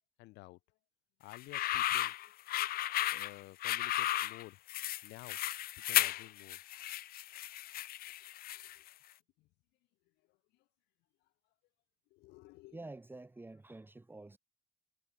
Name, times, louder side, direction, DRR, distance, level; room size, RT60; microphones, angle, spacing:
voice 1, 0.2-0.6 1.2-2.1 3.1-4.6 5.0-5.4 5.8-6.6 8.7-8.8 9.4-9.5 12.1-12.8, left 21 dB, 90° left, 0.9 m, -52 dB
sound 1, 1.3-8.9, left 14 dB, 60° left, 0.7 m, -34 dB
voice 2, 12.7-14.4, right 2 dB, 10° right, 2.2 m, -49 dB
cardioid pair, 110°, 17 cm